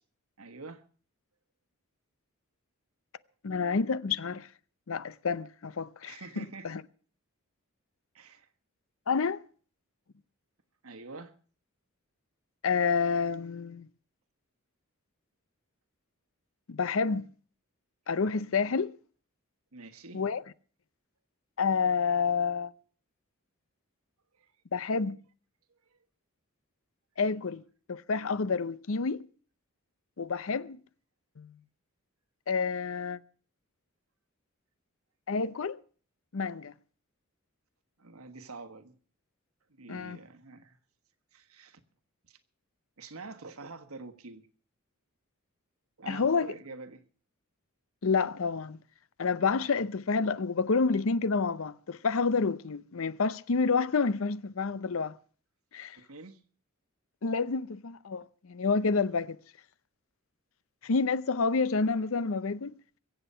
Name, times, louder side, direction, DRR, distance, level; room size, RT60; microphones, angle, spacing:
voice 1, 0.4-0.8 6.0-6.7 8.1-8.5 10.8-11.3 19.7-20.2 24.4-24.5 38.0-39.0 39.8-40.8 41.3-41.8 42.3-42.4 43.0-44.5 46.0-47.1 56.0-56.4, right 3 dB, 80° right, 1.4 m, -46 dB
voice 2, 3.4-4.5 4.9-6.8 9.1-9.4 12.6-13.9 16.7-17.3 18.1-19.0 20.1-20.4 21.6-22.7 24.7-25.2 27.2-27.6 27.9-29.2 30.2-30.8 31.4-31.5 32.5-33.2 35.3-35.8 36.3-36.7 39.9-40.2 46.1-46.5 48.0-48.8 49.2-55.2 55.7-56.0 57.2-59.4 60.8-62.7, left 4 dB, 65° left, 0.6 m, -29 dB
23.0 x 8.1 x 5.6 m
head